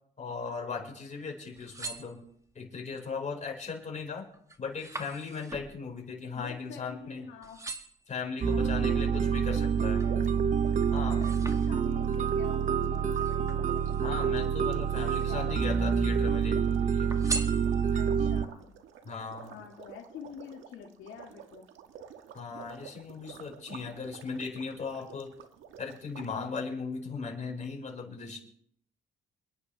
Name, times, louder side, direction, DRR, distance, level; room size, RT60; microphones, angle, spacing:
voice 1, 0.2-2.2 2.5-4.2 4.6-7.2 8.1-10.0 10.9-11.2 14.0-17.2 19.0-19.5 22.3-25.3 25.8-28.4, left 5 dB, 35° left, -1 dB, 5.2 m, -38 dB
sound 1, 1.4-2.7 3.3-3.7 4.0-7.1 7.4-8.1 8.7-10.2 10.6-12.2 13.1-14.2 14.8-15.6 15.9-16.6 17.1-18.2 18.7-18.8, right 4 dB, 15° right, 1.9 m, -42 dB
voice 2, 6.3-7.6 8.4-10.3 10.9-13.9 15.0-16.1 17.9-18.7 19.5-21.7, left 7 dB, 80° left, 1 dB, 1.8 m, -48 dB
sound 2, 8.4-18.5, right 7 dB, 40° right, 0.8 m, -27 dB
sound 3, 10.0-26.3, right 8 dB, 85° right, 1.4 m, -51 dB
28.0 x 10.0 x 3.4 m, 0.67 s
cardioid pair, 90°, 20 cm